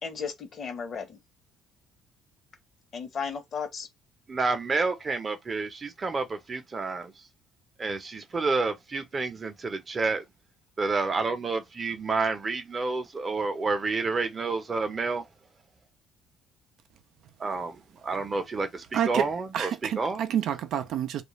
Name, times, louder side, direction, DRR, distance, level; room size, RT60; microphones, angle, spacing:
voice 1, 0.0-1.2 2.9-3.9, left 6 dB, 45° left, 1.0 m, -34 dB
voice 2, 4.3-7.1 7.8-10.2 10.8-15.3 17.4-19.7 20.0-20.3, right 3 dB, 30° right, 0.7 m, -29 dB
voice 3, 18.9-21.2, right 10 dB, 70° right, 0.5 m, -29 dB
2.4 x 2.1 x 3.1 m
cardioid pair, 100°, 0 cm